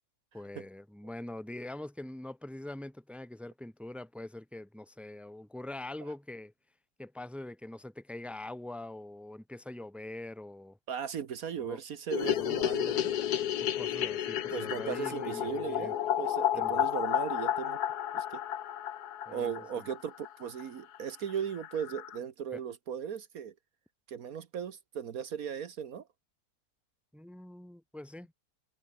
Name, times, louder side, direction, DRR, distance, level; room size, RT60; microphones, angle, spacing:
voice 1, 0.3-6.5 7.0-10.8 11.6-11.8 12.4-13.0 13.6-15.9 16.5-16.8 19.3-19.9 22.5-22.6 27.1-28.3, left 1 dB, ahead, 2.0 m, -44 dB
voice 2, 10.9-13.1 14.5-17.8 18.1-18.4 19.3-23.5 24.1-26.1, right 8 dB, 65° right, 1.5 m, -37 dB
sound 1, 12.1-20.3 20.6-20.7 20.9-21.0 21.3-21.4 21.6-22.2, left 11 dB, 80° left, 1.5 m, -32 dB
omnidirectional pair, 1.7 m